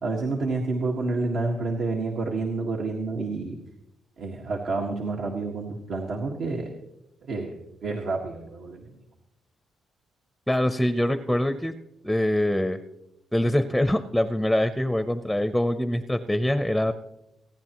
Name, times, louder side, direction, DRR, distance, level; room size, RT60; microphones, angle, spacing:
voice 1, 0.0-3.6 4.2-6.7 7.2-7.5 7.8-8.9, right 3 dB, 70° right, -1 dB, 1.7 m, -29 dB
voice 2, 10.5-11.7 12.0-12.8 13.3-16.9, left 1 dB, 5° left, 10 dB, 0.7 m, -24 dB
30.0 x 10.5 x 3.0 m, 0.88 s
cardioid pair, 90°, 0 cm